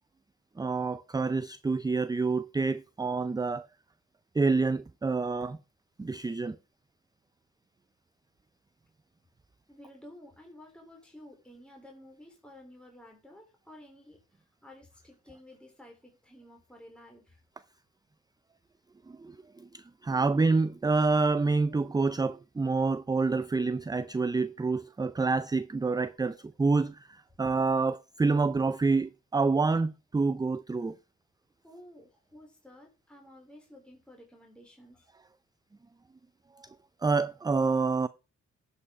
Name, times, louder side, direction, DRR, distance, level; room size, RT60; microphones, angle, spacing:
voice 1, 0.6-3.7 4.3-5.6 6.0-6.6 19.1-31.0 36.6-36.7 37.0-38.1, right 4 dB, 15° right, 0.4 m, -27 dB
voice 2, 9.7-14.2 14.6-17.4 31.6-35.1, left 1 dB, 5° left, 3.3 m, -52 dB
12.5 x 5.5 x 4.8 m
cardioid pair, 70°, 31 cm